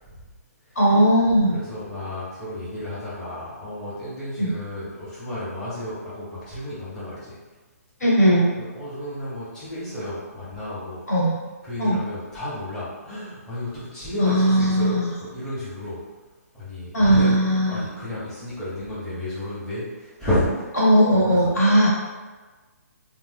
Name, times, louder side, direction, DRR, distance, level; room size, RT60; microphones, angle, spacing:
voice 1, 0.7-1.6 4.4-4.5 8.0-8.5 11.1-11.4 11.8-12.0 14.2-15.1 16.9-17.9 20.8-21.9, equal, 75° left, -5 dB, 1.3 m, -18 dB
voice 2, 1.5-7.4 8.7-11.0 11.6-16.0 16.5-17.4 17.6-20.7 21.1-21.5, left 1 dB, 5° left, -12 dB, 0.7 m, -31 dB
2.5 x 2.0 x 3.4 m, 1.3 s
hypercardioid pair, 160°, 9 cm